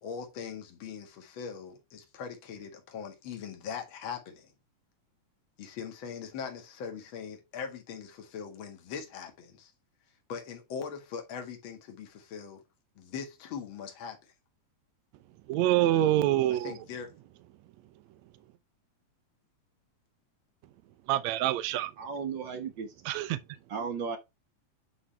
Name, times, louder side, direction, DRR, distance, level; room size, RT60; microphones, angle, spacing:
voice 1, 0.0-4.5 5.6-9.7 10.3-12.6 13.0-14.2 16.6-17.1, left 6 dB, 45° left, 2.2 m, -41 dB
voice 2, 15.5-16.7 21.1-21.9 23.0-23.4, right 13 dB, 75° right, 1.7 m, -26 dB
voice 3, 21.7-22.9 23.7-24.2, right 6 dB, 55° right, 1.3 m, -35 dB
10.0 x 4.0 x 3.4 m
omnidirectional pair, 3.6 m